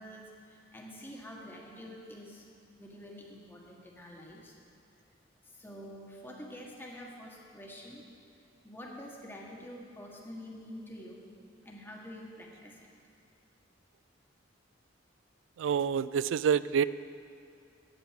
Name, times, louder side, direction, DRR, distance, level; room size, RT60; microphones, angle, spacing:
voice 1, 0.0-2.5 2.7-4.5 5.4-8.0 8.6-11.2 11.6-12.9, equal, 10° left, -2 dB, 1.6 m, -47 dB
voice 2, 15.6-16.8, right 7 dB, 80° right, 16 dB, 0.3 m, -27 dB
9.0 x 8.7 x 7.6 m, 2.5 s
head